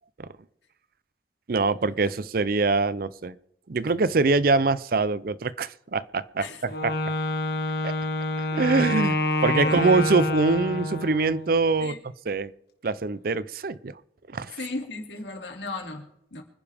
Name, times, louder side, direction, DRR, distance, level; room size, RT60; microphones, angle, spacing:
voice 1, 1.5-3.4 3.7-6.9 7.8-7.9 8.4-12.0 12.3-12.5 12.8-14.0 14.3-14.6, right 3 dB, 55° right, 0.5 m, -24 dB
Wind instrument woodwind instrument, 6.7-11.5, left 1 dB, 60° left, 1.8 m, -27 dB
voice 2, 9.6-10.1 11.8-12.0 14.6-16.4, left 2 dB, 90° left, 2.7 m, -36 dB
25.5 x 10.0 x 3.5 m
head